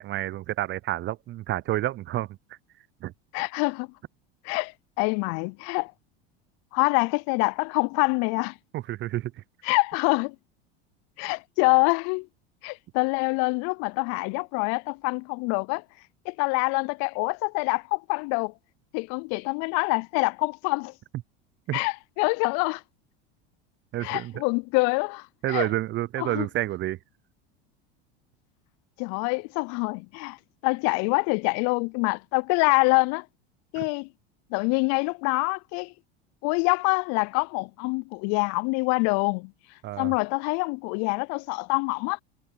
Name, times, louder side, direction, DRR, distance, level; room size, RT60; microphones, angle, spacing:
voice 1, 0.0-2.6 3.0-3.1 8.7-9.4 21.7-21.8 23.9-24.4 25.4-27.0 33.8-33.9 39.8-40.1, right 15 dB, 35° right, 0.5 m, -29 dB
voice 2, 3.3-3.9 4.4-5.9 6.7-8.5 9.6-10.4 11.2-12.3 12.6-15.8 16.3-18.5 18.9-20.9 21.7-22.8 24.0-25.7 26.2-26.5 29.0-30.4 30.6-33.3 33.7-34.1 34.5-35.9 36.4-39.5 40.0-42.2, left 32 dB, 55° left, 0.5 m, -25 dB
hypercardioid pair, 85°, 31 cm